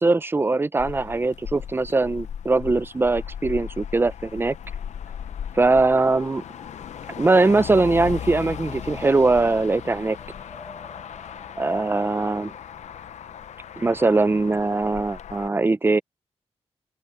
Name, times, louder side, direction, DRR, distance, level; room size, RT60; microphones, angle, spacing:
voice 1, 0.0-4.6 5.5-6.4 7.2-10.2 11.6-12.5 13.8-16.0, right 3 dB, 20° right, 0.5 m, -21 dB
Motor vehicle (road), 0.8-15.5, left 9 dB, 85° left, 0.7 m, -37 dB
sound 1, 5.6-13.3, left 2 dB, 25° left, 2.6 m, -48 dB
wide cardioid pair, 125°, 12 cm